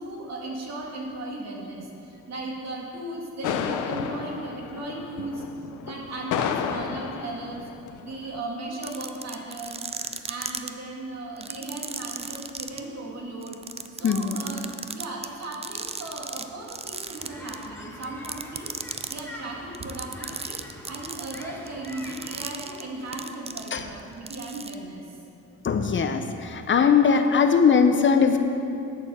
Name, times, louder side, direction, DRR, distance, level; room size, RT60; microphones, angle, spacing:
voice 1, 0.0-5.4 5.8-7.7 8.0-9.9 10.3-13.7 13.9-14.7 14.9-25.2, right 2 dB, 60° right, -1 dB, 2.1 m, -36 dB
sound 1, 3.4-8.4, left 8 dB, 80° left, 0.7 m, -32 dB
sound 2, 8.7-10.7 11.4-12.8 13.4-16.4 16.7-17.7 18.0-19.2 19.7-24.0 24.3-24.7, right 5 dB, 20° right, 0.5 m, -35 dB
voice 2, 14.0-14.4 23.7-23.8 25.6-28.4, left 6 dB, 40° left, 7 dB, 0.7 m, -20 dB
sound 3, 17.2-22.5, left 1 dB, 5° left, 1.3 m, -44 dB
8.6 x 7.0 x 6.7 m, 2.6 s
cardioid pair, 90°, 30 cm